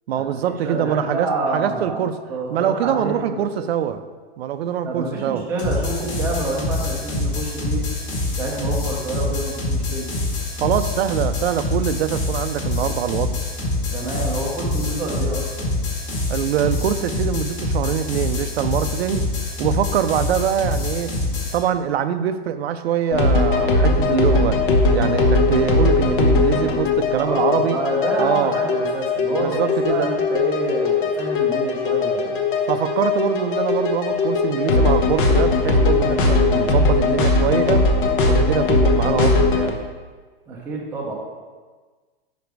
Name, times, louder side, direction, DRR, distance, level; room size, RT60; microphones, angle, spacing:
voice 1, 0.1-2.2 2.5-4.0 4.4-5.4 10.6-13.5 16.3-19.3 19.6-21.1 21.5-24.6 24.9-27.8 28.2-28.6 29.4-30.1 32.7-37.9 38.2-39.8, right 9 dB, 85° right, 10 dB, 0.5 m, -23 dB
voice 2, 0.6-3.7 4.9-7.8 8.4-10.1 13.9-15.5 27.2-32.4 40.5-41.1, right 2 dB, 5° right, -3 dB, 0.5 m, -28 dB
sound 1, 5.6-21.6, left 2 dB, 35° left, 1.3 m, -25 dB
sound 2, 23.1-39.7, left 3 dB, 55° left, 1.0 m, -19 dB
5.1 x 5.0 x 4.6 m, 1.4 s
supercardioid pair, 165°, 31 cm